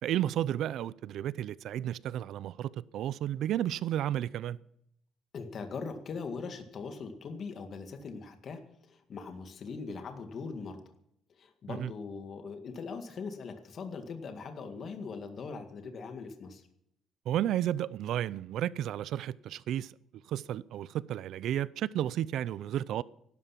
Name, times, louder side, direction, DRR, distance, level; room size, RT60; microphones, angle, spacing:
voice 1, 0.0-4.6 11.7-11.9 17.3-19.9 20.3-23.0, right 11 dB, 70° right, 0.5 m, -32 dB
voice 2, 5.3-10.8 11.4-16.7, left 4 dB, 45° left, 2.0 m, -41 dB
16.0 x 12.0 x 5.9 m
cardioid pair, 125°, 0 cm